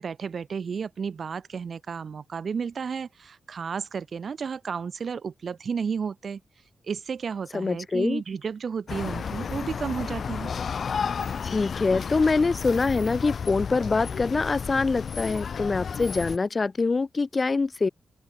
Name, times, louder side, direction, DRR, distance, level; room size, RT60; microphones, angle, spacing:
voice 1, 0.0-6.4 6.9-10.5, right 6 dB, 50° right, 2.4 m, -32 dB
voice 2, 7.5-8.2 11.4-17.9, left 4 dB, 30° left, 0.8 m, -24 dB
sound 1, 8.9-16.4, left 6 dB, 55° left, 2.8 m, -32 dB
open air
wide cardioid pair, 120°, 0 cm